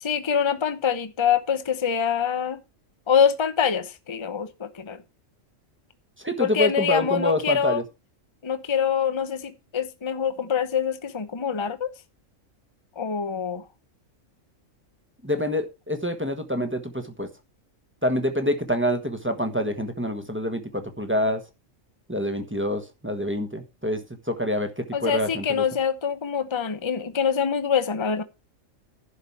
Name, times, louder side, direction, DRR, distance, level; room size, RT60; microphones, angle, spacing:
voice 1, 0.0-2.6 3.1-5.0 6.4-7.8 8.4-11.9 13.0-13.6 24.9-28.2, left 7 dB, 25° left, 0.8 m, -25 dB
voice 2, 6.2-7.8 15.2-17.3 18.0-21.4 22.1-24.0 24.3-25.6, left 1 dB, 10° right, 1.3 m, -26 dB
11.5 x 5.1 x 7.2 m
omnidirectional pair, 1.4 m